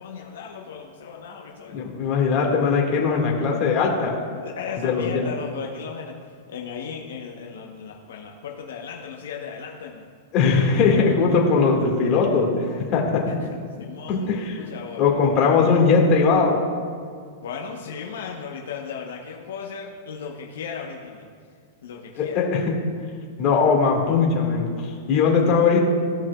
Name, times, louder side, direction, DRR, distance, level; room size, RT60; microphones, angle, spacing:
voice 1, 0.0-1.9 4.4-6.2 6.5-10.1 13.8-15.0 17.4-21.3 21.8-22.4, left 6 dB, 80° left, 0 dB, 1.0 m, -36 dB
voice 2, 1.7-4.2 4.8-5.2 10.3-13.4 14.1-14.6 15.0-16.6 22.2-22.7 23.4-25.8, left 5 dB, 40° left, -1 dB, 1.9 m, -20 dB
15.5 x 6.0 x 2.3 m, 2.2 s
hypercardioid pair, 140°, 0 cm